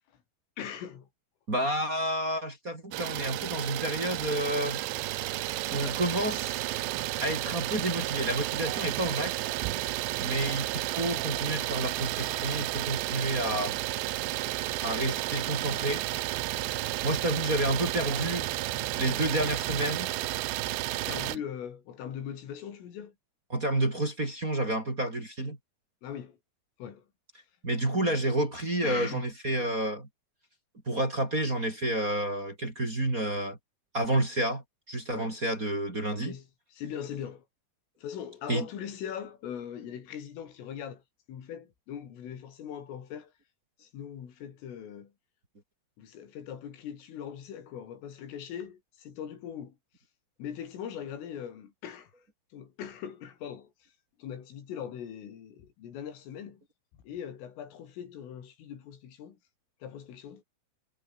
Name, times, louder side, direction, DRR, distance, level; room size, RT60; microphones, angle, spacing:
voice 1, 0.6-1.1 5.8-6.0 21.1-23.2 26.0-26.4 26.8-27.1 28.1-28.2 28.8-29.3 35.1-35.4 36.1-37.5 38.0-41.0 41.3-43.3 43.8-45.1 46.0-49.8 50.4-52.1 52.5-53.9 54.2-56.6 56.9-59.4 59.8-60.4, left 9 dB, 85° left, 6.2 m, -41 dB
voice 2, 1.5-4.8 5.7-6.6 7.2-9.5 10.2-13.8 14.8-16.0 17.0-18.5 19.0-20.1 23.5-25.6 27.6-30.1 30.9-33.6 33.9-36.3 38.5-38.7, right 1 dB, 20° right, 3.6 m, -30 dB
Idling, 2.9-21.4, right 17 dB, 75° right, 3.0 m, -32 dB
omnidirectional pair, 5.6 m